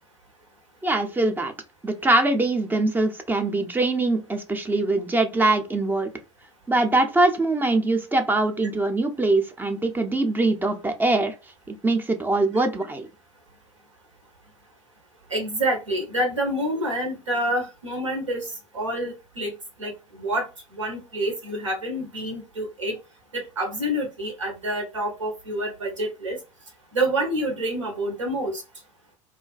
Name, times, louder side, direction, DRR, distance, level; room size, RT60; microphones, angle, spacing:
voice 1, 0.8-1.5 1.8-6.1 6.7-11.3 11.7-13.1, right 2 dB, 10° right, 0.5 m, -23 dB
voice 2, 15.3-19.5 19.8-20.5 20.7-23.0 23.3-26.4 26.9-28.6, right 1 dB, 85° right, 0.9 m, -27 dB
2.4 x 2.2 x 2.3 m
figure-of-eight pair, 70°, 16 cm